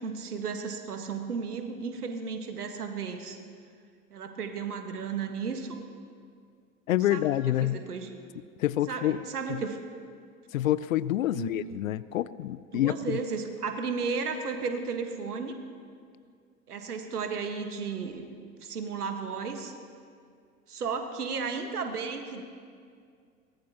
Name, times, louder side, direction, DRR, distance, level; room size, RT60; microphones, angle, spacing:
voice 1, 0.0-3.4 4.1-5.8 7.1-7.2 7.6-8.1 8.9-9.8 11.3-11.5 12.7-15.6 16.7-18.3 18.6-19.7 20.7-22.4, right 5 dB, 75° right, 6 dB, 1.7 m, -34 dB
voice 2, 6.9-7.8 8.6-9.2 9.5-9.6 10.5-13.2, left 13 dB, 60° left, 17 dB, 0.5 m, -27 dB
22.5 x 18.0 x 3.0 m, 2.2 s
figure-of-eight pair, 85°, 46 cm